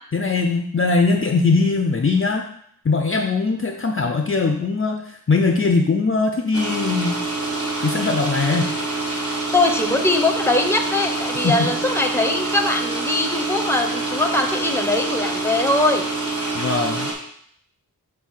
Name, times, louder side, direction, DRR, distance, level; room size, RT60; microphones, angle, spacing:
voice 1, 0.1-2.4 2.8-7.2 7.8-8.7 11.4-11.7 16.5-17.1, left 4 dB, 35° left, 4 dB, 0.5 m, -20 dB
sound 1, 6.5-17.1, right 2 dB, 40° right, 1.4 m, -26 dB
voice 2, 9.5-16.0, left 2 dB, 5° left, 4 dB, 0.8 m, -21 dB
7.1 x 2.8 x 5.6 m, 0.66 s
wide cardioid pair, 70°, 37 cm